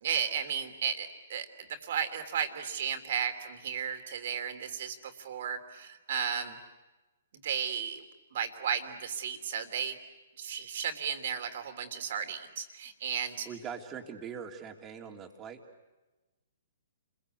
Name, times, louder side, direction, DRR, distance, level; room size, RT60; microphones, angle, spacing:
voice 1, 0.0-6.6 7.4-8.0 8.3-10.0 10.4-13.5, right 7 dB, 55° right, 7 dB, 3.3 m, -34 dB
voice 2, 13.4-15.6, right 7 dB, 20° right, 3 dB, 3.2 m, -42 dB
30.0 x 22.5 x 8.3 m, 1.1 s
hypercardioid pair, 125°, 0 cm